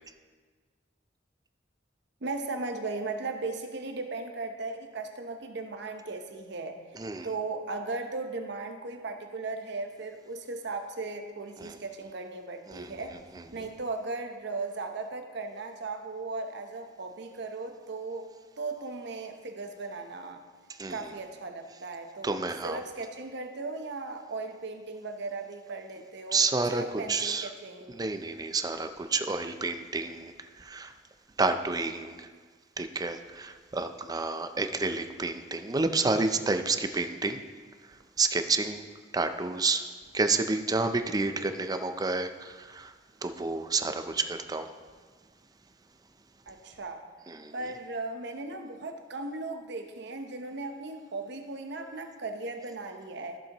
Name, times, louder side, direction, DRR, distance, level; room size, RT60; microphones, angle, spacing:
voice 1, 2.2-6.8 7.2-13.2 13.5-18.3 18.6-20.4 20.9-28.0 46.5-47.0 47.5-53.4, right 3 dB, 65° right, 6 dB, 0.9 m, -37 dB
voice 2, 6.9-7.3 11.6-11.8 12.7-12.9 13.4-13.7 20.7-21.1 22.2-22.8 26.3-27.5 27.9-30.9 31.4-32.3 32.8-37.4 37.9-38.8 39.1-39.8 40.1-42.9 43.2-44.7 47.3-47.5, right 3 dB, 20° right, 8 dB, 0.5 m, -30 dB
14.0 x 7.3 x 3.0 m, 1.5 s
head